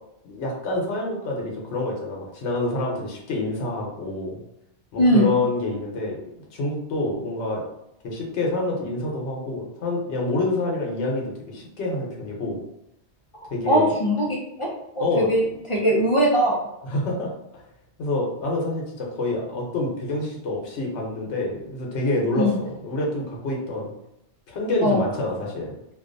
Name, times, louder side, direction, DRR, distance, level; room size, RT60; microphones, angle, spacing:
voice 1, 0.2-4.4 4.9-7.6 8.0-12.6 13.5-13.9 15.0-15.8 16.8-17.6 18.0-23.9 24.5-25.7, left 2 dB, 80° left, -1 dB, 1.0 m, -27 dB
voice 2, 5.0-5.3 13.4-14.7 15.0-15.4 15.7-16.6 22.3-22.6 24.8-25.0, equal, 50° left, -4 dB, 0.4 m, -20 dB
2.5 x 2.2 x 2.5 m, 0.84 s
omnidirectional pair, 1.1 m